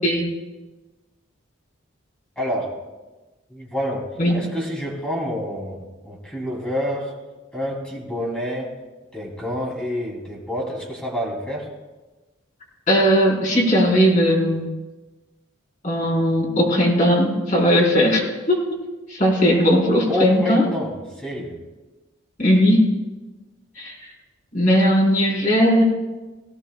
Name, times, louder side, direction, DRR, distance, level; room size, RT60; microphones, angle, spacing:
voice 1, 2.3-2.7 3.5-7.1 7.5-8.8 9.1-11.7 20.1-21.5, equal, 5° left, -4 dB, 3.3 m, -28 dB
voice 2, 12.9-14.7 15.8-18.6 19.1-20.7 22.4-22.8 23.7-24.1 24.5-25.8, equal, 40° left, -4 dB, 4.5 m, -18 dB
18.5 x 17.0 x 2.4 m, 1.2 s
head